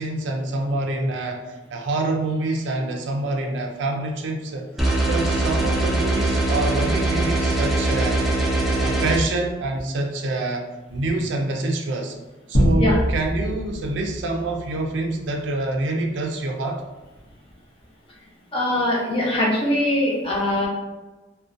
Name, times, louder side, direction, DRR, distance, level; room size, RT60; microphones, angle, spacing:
voice 1, 0.0-8.2 8.8-12.1 12.5-16.8, right 2 dB, 75° right, 2 dB, 0.4 m, -26 dB
sound 1, 4.8-9.2, right 2 dB, ahead, 0.3 m, -21 dB
sound 2, 12.5-15.4, equal, 90° left, 0.8 m, -24 dB
voice 2, 18.5-20.7, left 1 dB, 30° left, -4 dB, 0.6 m, -22 dB
2.5 x 2.1 x 2.5 m, 1.1 s
head